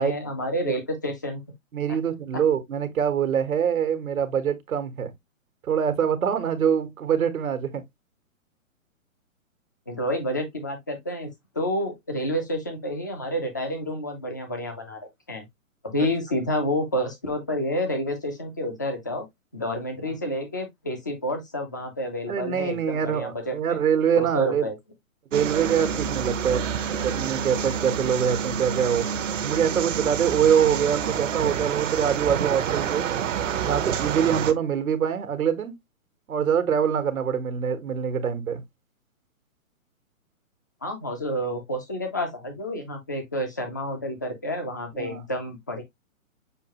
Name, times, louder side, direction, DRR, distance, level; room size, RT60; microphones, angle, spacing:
voice 1, 0.0-1.4 1.9-2.0 9.9-15.0 15.3-15.4 15.8-19.2 19.5-23.8 24.1-24.7 40.8-45.8, equal, 15° left, 0.4 m, -29 dB
voice 2, 1.7-5.1 5.6-7.8 22.3-24.7 25.3-26.6 27.0-29.1 29.4-33.1 33.6-35.7 36.3-38.6 44.9-45.2, right 8 dB, 85° right, 1.3 m, -24 dB
sound 1, 25.3-34.5, right 7 dB, 65° right, 0.8 m, -28 dB
6.4 x 2.3 x 2.9 m
hypercardioid pair, 150°, 41 cm